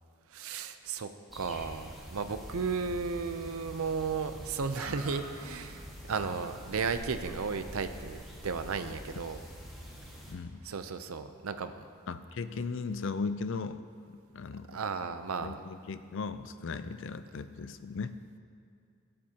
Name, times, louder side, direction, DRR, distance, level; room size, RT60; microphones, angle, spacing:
voice 1, 0.3-9.4 10.6-11.8 14.7-15.6, right 5 dB, 85° right, 10 dB, 0.6 m, -34 dB
sound 1, 1.3-10.3, equal, ahead, 1.6 m, -45 dB
voice 2, 10.3-10.6 12.1-14.7 15.4-18.1, left 4 dB, 60° left, 12 dB, 0.4 m, -37 dB
17.0 x 7.6 x 2.9 m, 2.4 s
head